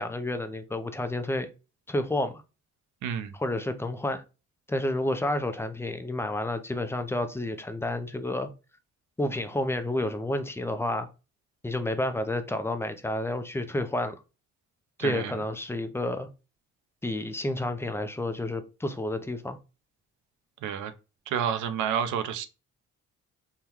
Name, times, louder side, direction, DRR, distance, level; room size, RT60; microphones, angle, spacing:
voice 1, 0.0-1.5 1.9-2.4 3.3-4.2 4.7-8.5 9.2-11.1 11.6-14.2 15.0-16.3 17.0-19.6, left 1 dB, 10° left, 0.4 m, -30 dB
voice 2, 3.0-3.3 15.0-15.3 20.6-20.9 21.3-22.5, right 8 dB, 80° right, 0.6 m, -29 dB
3.6 x 2.2 x 2.9 m
cardioid pair, 90°, 30 cm